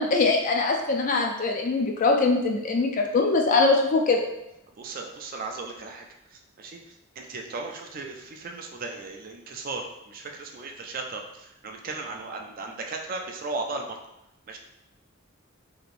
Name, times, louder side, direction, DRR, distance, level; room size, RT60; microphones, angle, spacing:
voice 1, 0.0-4.3, left 3 dB, 40° left, 2 dB, 0.3 m, -22 dB
voice 2, 4.8-6.1 6.3-6.8 7.2-14.0 14.5-14.6, right 3 dB, 45° right, 2 dB, 0.4 m, -36 dB
3.3 x 2.8 x 2.5 m, 0.87 s
head